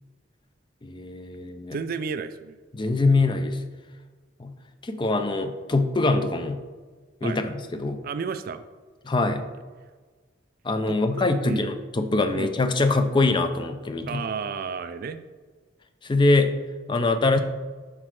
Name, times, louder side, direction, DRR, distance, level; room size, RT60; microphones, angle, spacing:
voice 1, 0.8-1.8 2.7-3.6 4.4-4.6 4.8-6.6 7.2-8.0 9.0-9.5 10.6-14.2 16.0-16.6 16.9-17.4, left 2 dB, 25° left, 8 dB, 0.4 m, -23 dB
voice 2, 1.7-2.6 7.2-7.4 8.0-8.6 10.9-11.7 12.3-12.5 14.1-15.2, right 5 dB, 45° right, 10 dB, 0.3 m, -32 dB
6.0 x 4.3 x 4.7 m, 1.4 s
head